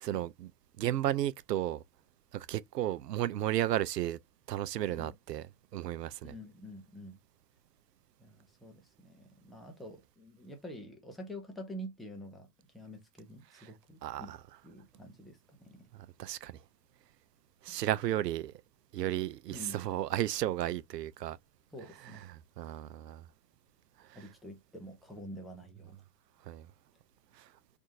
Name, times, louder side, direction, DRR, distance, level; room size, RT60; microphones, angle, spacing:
voice 1, 0.0-0.5 0.8-1.8 2.3-4.2 4.5-5.4 5.7-6.3 13.6-13.7 14.0-14.4 16.2-16.6 17.6-18.5 18.9-21.4 22.3-23.2 26.5-26.7, right 13 dB, 80° right, 0.6 m, -33 dB
voice 2, 6.2-7.2 8.2-12.5 12.7-14.3 14.6-15.9 17.7-17.8 19.5-19.8 21.7-22.3 24.1-26.0, equal, ahead, 0.4 m, -47 dB
3.6 x 2.5 x 2.5 m
hypercardioid pair, 105°, 48 cm